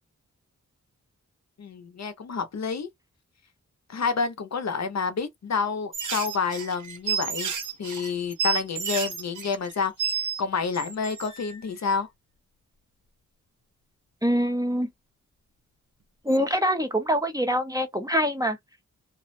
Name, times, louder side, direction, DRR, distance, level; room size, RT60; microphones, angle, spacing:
voice 1, 1.6-2.9 3.9-7.5 7.8-12.1, left 5 dB, 60° left, 0.7 m, -29 dB
sound 1, 5.9-10.4 10.7-11.6 16.3-16.5, right 7 dB, 75° right, 0.7 m, -31 dB
voice 2, 14.2-14.9 16.2-18.6, equal, 10° right, 0.5 m, -24 dB
2.4 x 2.0 x 2.6 m
wide cardioid pair, 90°, 30 cm